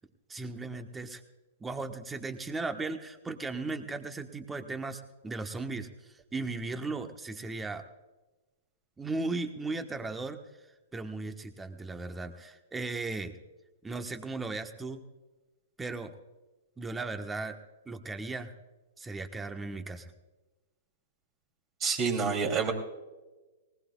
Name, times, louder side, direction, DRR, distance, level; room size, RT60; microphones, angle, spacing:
voice 1, 0.3-1.2 1.6-5.9 6.3-7.8 9.0-10.4 10.9-13.4 13.8-15.0 15.8-16.1 16.8-17.6 17.9-18.5 19.0-20.1, right 3 dB, 10° right, 7 dB, 1.2 m, -36 dB
voice 2, 21.8-22.7, right 5 dB, 30° right, 3 dB, 3.0 m, -28 dB
19.5 x 19.5 x 2.4 m, 1.2 s
hypercardioid pair, 110°, 0 cm